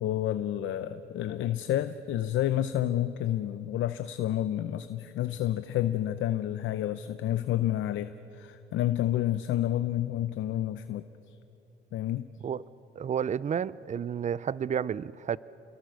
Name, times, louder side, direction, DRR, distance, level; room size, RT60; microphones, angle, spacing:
voice 1, 0.0-11.4 11.9-12.3, left 12 dB, 80° left, 12 dB, 0.7 m, -30 dB
voice 2, 13.0-15.4, right 8 dB, 35° right, 19 dB, 0.5 m, -31 dB
28.0 x 22.0 x 6.4 m, 3.0 s
cardioid pair, 90°, 20 cm